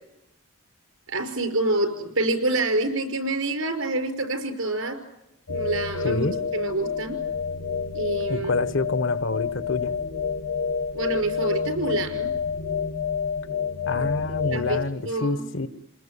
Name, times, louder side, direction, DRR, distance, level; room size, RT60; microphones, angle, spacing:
voice 1, 1.1-5.0 5.5-6.3 6.5-7.2 7.9-8.5 10.9-12.3 14.0-14.1 14.4-14.8 15.1-15.4, right 2 dB, 85° right, 7 dB, 5.4 m, -27 dB
sound 1, 5.5-14.8, left 6 dB, 85° left, 1.7 m, -28 dB
voice 2, 6.0-6.3 8.3-9.9 13.8-15.7, left 2 dB, 70° left, 13 dB, 1.3 m, -27 dB
29.0 x 20.5 x 9.9 m, 0.86 s
head